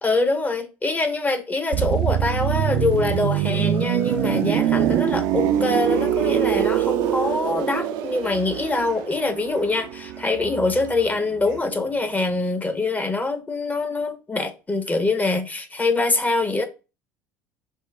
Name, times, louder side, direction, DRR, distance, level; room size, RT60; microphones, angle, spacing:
voice 1, 0.0-16.7, left 3 dB, 15° left, 0.6 m, -24 dB
sound 1, 1.7-11.4 11.6-11.9, right 11 dB, 55° right, 0.4 m, -24 dB
sound 2, 4.8-12.4, right 8 dB, 80° right, 0.8 m, -44 dB
4.3 x 2.1 x 3.4 m
figure-of-eight pair, 60°, 10 cm